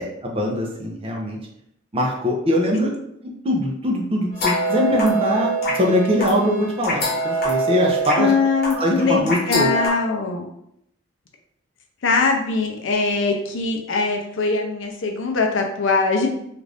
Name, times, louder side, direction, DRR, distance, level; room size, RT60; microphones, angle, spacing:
voice 1, 0.2-1.4 1.9-2.9 3.4-8.3 8.8-9.7, equal, 25° right, -1 dB, 0.5 m, -22 dB
sound 1, 4.3-9.9, right 2 dB, 50° left, 0.9 m, -24 dB
voice 2, 8.1-10.4 12.0-16.3, left 4 dB, 65° left, 2 dB, 0.5 m, -21 dB
2.5 x 2.5 x 3.3 m, 0.76 s
head